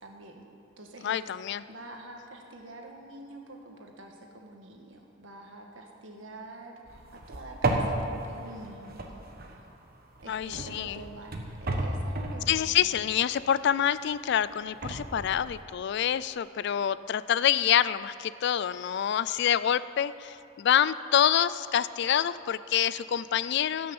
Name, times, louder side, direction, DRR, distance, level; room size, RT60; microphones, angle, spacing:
voice 1, 0.0-0.5 0.8-1.3 1.7-9.7 10.2-12.9, right 2 dB, 75° right, 2 dB, 1.6 m, -46 dB
voice 2, 1.0-1.6 10.3-11.0 12.5-23.9, left 9 dB, 60° left, 16 dB, 0.3 m, -26 dB
sound 1, 6.9-9.8 10.2-13.6 14.1-15.6, right 2 dB, 50° right, 1.2 m, -33 dB
16.5 x 6.3 x 7.1 m, 2.9 s
head